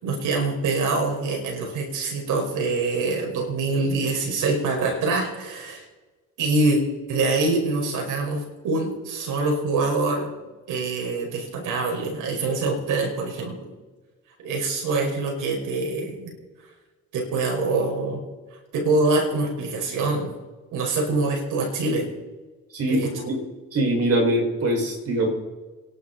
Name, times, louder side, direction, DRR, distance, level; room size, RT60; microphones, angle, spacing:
voice 1, 0.0-5.8 6.4-6.8 7.1-13.6 14.4-16.3 17.1-18.2 18.7-20.3 20.7-22.1 22.9-23.1, right 3 dB, 85° right, 1 dB, 5.4 m, -25 dB
voice 2, 22.7-23.4 23.7-25.3, right 1 dB, 50° right, 0 dB, 6.4 m, -23 dB
27.5 x 11.5 x 4.3 m, 1.3 s
cardioid pair, 90°, 30 cm